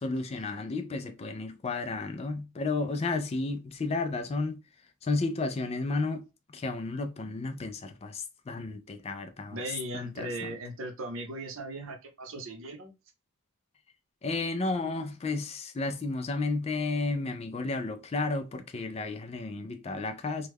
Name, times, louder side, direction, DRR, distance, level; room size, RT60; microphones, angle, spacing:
voice 1, 0.0-4.6 5.0-6.2 6.5-10.6 14.2-20.5, left 3 dB, 30° left, 0.3 m, -32 dB
voice 2, 9.5-12.9, right 1 dB, 65° right, 0.7 m, -38 dB
3.1 x 2.2 x 3.4 m
head